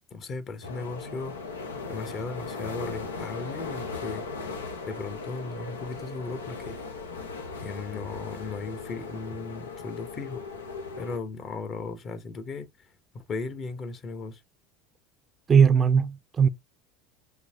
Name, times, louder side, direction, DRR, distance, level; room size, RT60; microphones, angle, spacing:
voice 1, 0.1-1.4 1.9-4.3 4.9-6.8 7.6-10.4 11.0-12.9 13.1-14.4, left 4 dB, 40° left, 1.0 m, -36 dB
sound 1, 0.6-11.2, left 4 dB, 90° left, 0.8 m, -38 dB
voice 2, 15.5-16.5, right 6 dB, 30° right, 0.5 m, -19 dB
3.8 x 2.8 x 2.7 m
hypercardioid pair, 75°, 0 cm